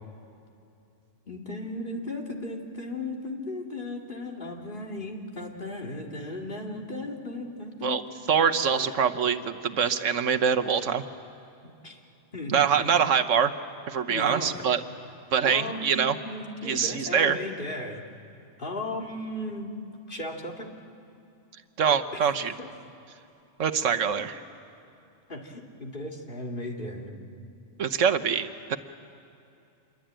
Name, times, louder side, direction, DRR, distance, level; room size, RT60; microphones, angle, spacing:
voice 1, 1.3-8.0 8.7-8.9 11.6-12.0 12.3-12.9 14.1-14.7 15.4-18.0 18.6-19.7 20.1-20.7 22.1-22.3 22.6-22.7 25.3-27.2, left 1 dB, 45° left, 1 dB, 2.6 m, -36 dB
voice 2, 8.3-11.0 12.5-13.5 13.9-14.8 15.3-16.2 16.6-17.4 21.8-22.5 23.6-24.4 27.8-28.8, right 7 dB, 80° right, 7 dB, 1.3 m, -24 dB
27.0 x 22.5 x 9.0 m, 2.7 s
omnidirectional pair, 1.3 m